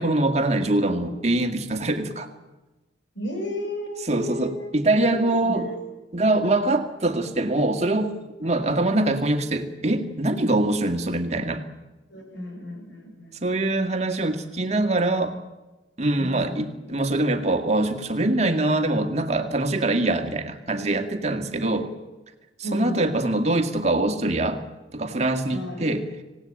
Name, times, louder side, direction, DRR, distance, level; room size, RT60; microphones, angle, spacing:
voice 1, 0.0-2.3 4.1-5.7 6.1-8.1 8.4-11.6 13.4-15.4 16.0-21.9 22.7-24.6 24.9-26.1, right 2 dB, 35° right, 6 dB, 1.9 m, -23 dB
voice 2, 3.1-5.8 8.4-9.0 12.1-13.4 16.2-16.8 21.8-21.9 22.6-23.2 25.5-25.9, left 1 dB, 80° left, 3 dB, 6.8 m, -34 dB
26.0 x 17.5 x 8.9 m, 1.1 s
head